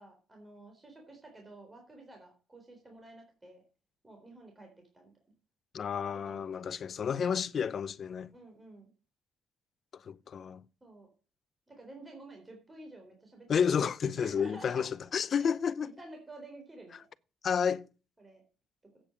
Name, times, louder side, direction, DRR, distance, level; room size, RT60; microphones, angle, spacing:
voice 1, 0.0-3.6 4.0-5.1 6.2-6.7 7.0-7.3 8.3-8.9 10.8-11.1 11.7-13.5 14.2-14.9 15.4-15.5 15.8-17.1 18.2-18.4 18.8-19.0, right 2 dB, 20° right, 3.9 m, -51 dB
voice 2, 5.7-8.3 10.1-10.6 13.5-15.9 17.4-17.9, left 7 dB, 55° left, 0.6 m, -31 dB
8.8 x 7.1 x 8.2 m
cardioid pair, 90°, 0 cm